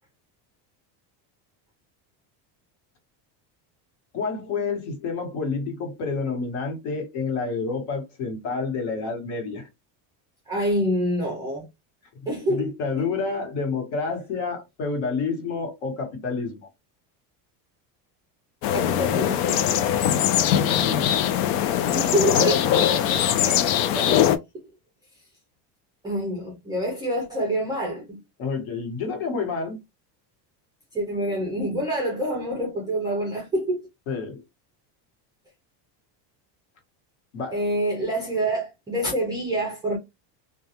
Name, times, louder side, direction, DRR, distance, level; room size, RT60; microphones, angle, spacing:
voice 1, 4.1-9.7 12.5-16.7 20.1-21.1 28.4-29.8 34.1-34.4 37.3-37.6, left 4 dB, 65° left, 1.2 m, -29 dB
voice 2, 10.5-11.7 12.3-12.7 13.0-13.1 18.7-19.7 20.0-20.2 21.9-24.3 26.0-28.2 30.9-33.9 37.5-40.0, equal, 10° right, 0.3 m, -27 dB
sound 1, 18.6-24.4, left 10 dB, 85° left, 0.6 m, -21 dB
2.3 x 2.3 x 2.8 m
cardioid pair, 170°, 48 cm